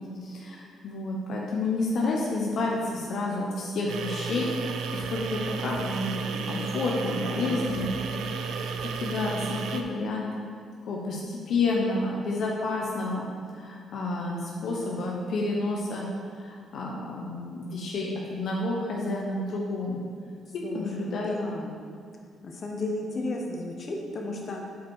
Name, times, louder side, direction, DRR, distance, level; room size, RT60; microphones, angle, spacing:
voice 1, 0.2-7.9 9.0-10.3 10.9-13.3 13.5-16.1 16.4-20.1 20.7-21.4, left 2 dB, 65° left, -2 dB, 0.9 m, -30 dB
sound 1, 3.9-9.8, right 5 dB, 80° right, 0.5 m, -33 dB
voice 2, 7.3-7.7 7.9-8.4 20.6-21.8 22.4-24.8, left 2 dB, 45° left, 0 dB, 1.1 m, -34 dB
7.0 x 4.6 x 4.5 m, 2.2 s
cardioid pair, 90°, 0 cm